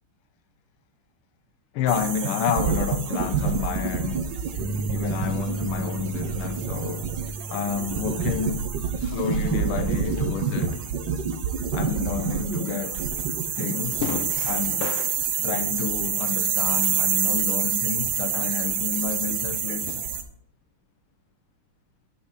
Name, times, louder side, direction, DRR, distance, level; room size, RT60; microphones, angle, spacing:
voice 1, 1.7-4.3 4.9-7.1 7.5-8.6 9.0-10.8 11.7-13.1 13.5-15.1 15.4-20.1, left 7 dB, 85° left, 1.6 m, -30 dB
sound 1, 1.9-20.2, right 6 dB, 65° right, 1.6 m, -27 dB
sound 2, 4.6-10.8, right 3 dB, 15° left, 0.8 m, -35 dB
9.3 x 8.7 x 4.0 m
omnidirectional pair, 2.3 m